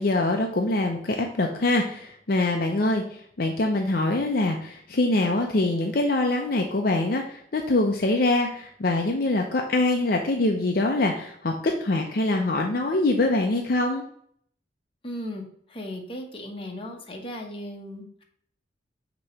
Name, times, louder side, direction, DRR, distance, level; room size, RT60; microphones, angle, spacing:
voice 1, 0.0-3.0 3.4-14.0, left 2 dB, 55° left, 2 dB, 0.7 m, -24 dB
voice 2, 15.0-18.2, left 1 dB, 30° left, 2 dB, 1.1 m, -37 dB
6.4 x 3.0 x 5.7 m, 0.65 s
head